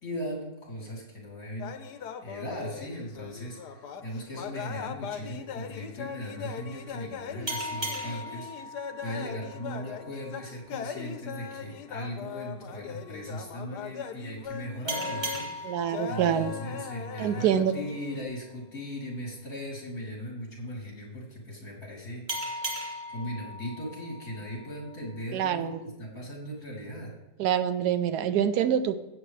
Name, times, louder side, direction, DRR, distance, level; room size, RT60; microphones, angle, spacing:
voice 1, 0.0-22.6 23.1-27.2, equal, 60° left, -3 dB, 3.9 m, -38 dB
sound 1, 1.6-15.4 15.8-18.3, left 7 dB, 85° left, 1.3 m, -40 dB
sound 2, 7.5-10.7 14.9-18.1 22.3-25.2, equal, 30° right, 2.2 m, -38 dB
voice 2, 15.6-16.5 17.2-17.7 25.3-25.8 27.4-29.0, right 9 dB, 80° right, 11 dB, 1.2 m, -26 dB
17.0 x 8.0 x 3.2 m, 1.1 s
omnidirectional pair, 1.7 m